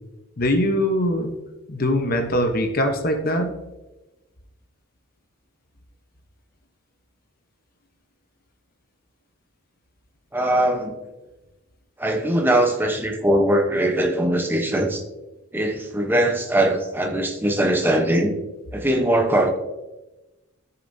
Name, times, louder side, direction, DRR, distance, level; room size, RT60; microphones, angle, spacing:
voice 1, 0.4-1.3 1.7-3.6, left 1 dB, 45° left, 5 dB, 1.0 m, -22 dB
voice 2, 10.3-11.0 12.0-15.0 15.5-18.3 18.7-19.5, right 1 dB, 10° right, 3 dB, 0.9 m, -21 dB
13.5 x 7.0 x 2.7 m, 1.1 s
head